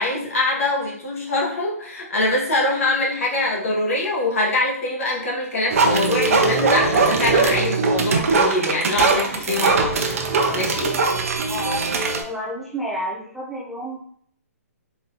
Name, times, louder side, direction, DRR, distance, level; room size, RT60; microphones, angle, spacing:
voice 1, 0.0-10.0 10.5-10.9, left 2 dB, 60° left, -3 dB, 1.6 m, -23 dB
sound 1, 5.7-12.2, right 4 dB, 60° right, 0.7 m, -20 dB
voice 2, 11.5-14.0, equal, ahead, -7 dB, 0.5 m, -30 dB
4.0 x 3.7 x 2.8 m, 0.63 s
hypercardioid pair, 165°, 9 cm